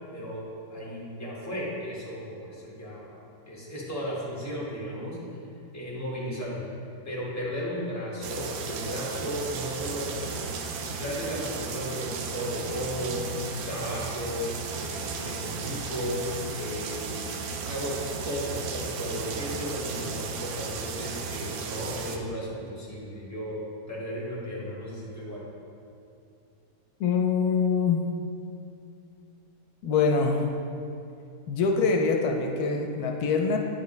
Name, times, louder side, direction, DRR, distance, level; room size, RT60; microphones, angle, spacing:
voice 1, 0.1-0.4 0.7-3.2 3.5-5.2 5.7-6.6 7.0-10.3 11.0-14.4 14.8-17.3 17.7-18.0 18.2-23.6 23.9-25.4, equal, 10° left, -6 dB, 1.4 m, -34 dB
sound 1, 8.2-22.2, right 5 dB, 75° right, 1.1 m, -35 dB
voice 2, 27.0-28.0 29.8-30.4 31.5-33.6, left 5 dB, 80° left, 2 dB, 1.1 m, -24 dB
9.8 x 5.1 x 3.1 m, 2.6 s
omnidirectional pair, 1.6 m